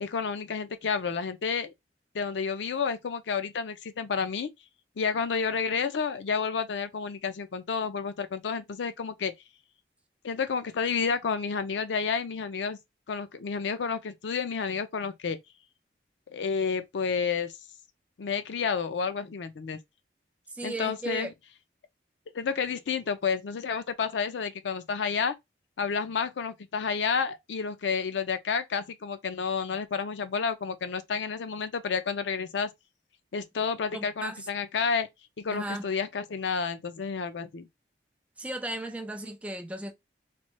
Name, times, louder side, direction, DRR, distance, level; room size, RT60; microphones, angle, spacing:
voice 1, 0.0-1.7 2.1-4.5 5.0-9.3 10.2-12.8 13.1-15.4 16.3-17.5 18.2-19.8 20.6-21.3 22.3-25.3 25.8-32.7 33.3-35.1 35.4-37.7, left 5 dB, 85° left, 0.5 m, -30 dB
voice 2, 20.5-21.3 33.9-34.5 35.5-35.9 38.4-39.9, right 1 dB, 10° right, 0.4 m, -35 dB
3.0 x 2.2 x 3.0 m
head